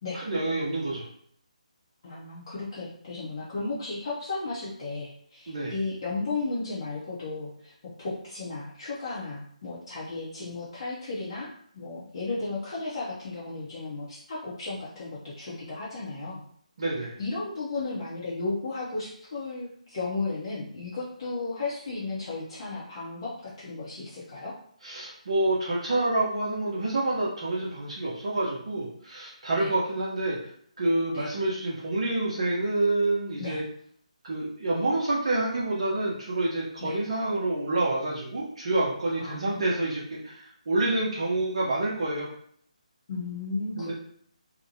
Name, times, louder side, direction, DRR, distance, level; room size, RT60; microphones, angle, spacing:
voice 1, 0.1-1.1 5.5-5.7 16.8-17.2 24.8-30.4 30.8-33.6 34.2-42.3 43.8-43.9, right 2 dB, 50° right, -6 dB, 0.7 m, -28 dB
voice 2, 2.0-7.7 8.0-16.4 17.2-24.6 29.6-29.7 31.1-31.3 33.4-33.6 36.8-37.0 39.2-39.7 43.1-43.9, left 3 dB, 40° left, -8 dB, 0.7 m, -34 dB
2.8 x 2.1 x 2.7 m, 0.64 s
figure-of-eight pair, 150°, 4 cm